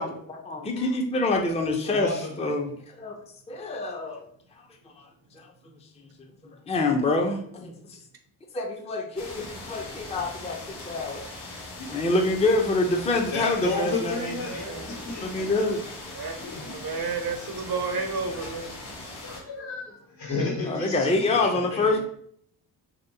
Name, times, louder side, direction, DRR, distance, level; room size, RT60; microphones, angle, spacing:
voice 1, 0.0-3.2 3.5-4.3 5.0-5.1 5.3-5.5 6.7-8.0 8.5-11.2 11.8-14.3 14.7-14.9 15.2-15.8 20.7-22.0, left 2 dB, 15° left, 2 dB, 0.5 m, -26 dB
voice 2, 1.8-2.4 13.1-15.6 16.0-16.1 16.4-16.8 18.2-18.7 19.2-22.0, left 3 dB, 65° left, -1 dB, 1.3 m, -33 dB
sound 1, 9.2-19.4, left 2 dB, 85° left, 0.9 m, -40 dB
voice 3, 14.4-14.8 16.2-18.7, right 4 dB, 50° right, 6 dB, 0.7 m, -32 dB
3.1 x 2.8 x 2.7 m, 0.64 s
hypercardioid pair, 45°, 49 cm